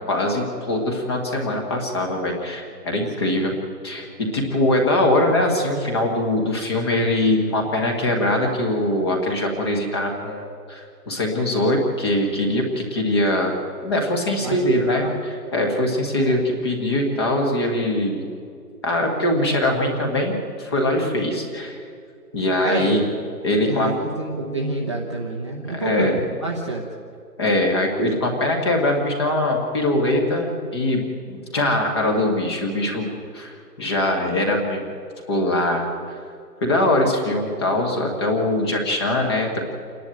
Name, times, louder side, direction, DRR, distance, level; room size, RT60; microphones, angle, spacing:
voice 1, 0.1-3.5 3.8-13.6 13.8-18.2 18.8-21.8 22.3-23.0 23.4-23.9 25.7-26.1 27.4-31.0 31.3-34.8 35.3-35.9 36.6-39.6, left 1 dB, 15° left, 2 dB, 1.5 m, -22 dB
voice 2, 22.6-23.0 23.6-26.8, right 2 dB, 20° right, -3 dB, 0.9 m, -28 dB
28.0 x 11.0 x 9.0 m, 2.3 s
hypercardioid pair, 170°, 49 cm